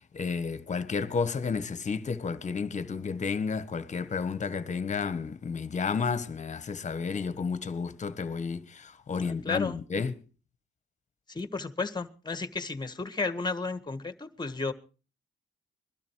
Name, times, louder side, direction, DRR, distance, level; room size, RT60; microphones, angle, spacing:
voice 1, 0.1-10.2, left 5 dB, 35° left, 1.4 m, -31 dB
voice 2, 9.2-9.8 11.3-14.7, left 4 dB, 20° left, 1.7 m, -33 dB
21.5 x 12.5 x 4.7 m
cardioid pair, 90°, 20 cm